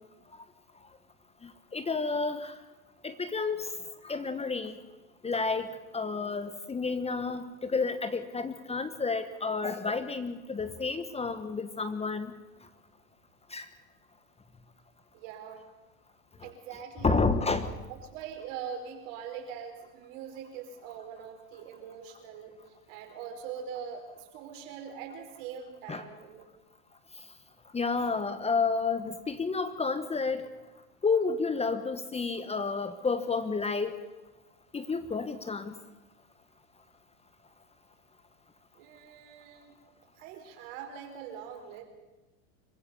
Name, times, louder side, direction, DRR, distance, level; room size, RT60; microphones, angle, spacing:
voice 1, 1.4-2.6 3.0-3.7 4.0-4.8 5.2-12.3 13.5-13.7 17.0-17.7 25.9-26.0 27.7-30.4 31.0-34.0 34.7-35.8, left 4 dB, 15° left, 12 dB, 1.3 m, -30 dB
voice 2, 15.1-15.7 16.4-17.2 17.9-22.6 22.9-26.5 38.7-39.8 40.2-41.8, right 7 dB, 65° right, 4 dB, 5.3 m, -42 dB
25.5 x 15.5 x 7.1 m, 1.2 s
supercardioid pair, 115°, 40 cm